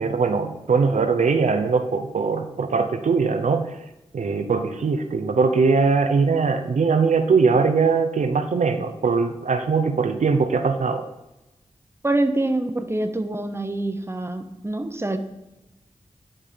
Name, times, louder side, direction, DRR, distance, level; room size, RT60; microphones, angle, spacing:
voice 1, 0.0-3.8 4.1-11.0, right 4 dB, 80° right, 7 dB, 0.6 m, -21 dB
voice 2, 12.0-15.2, right 2 dB, 20° right, 7 dB, 0.9 m, -25 dB
10.5 x 3.7 x 5.0 m, 0.97 s
cardioid pair, 45°, 13 cm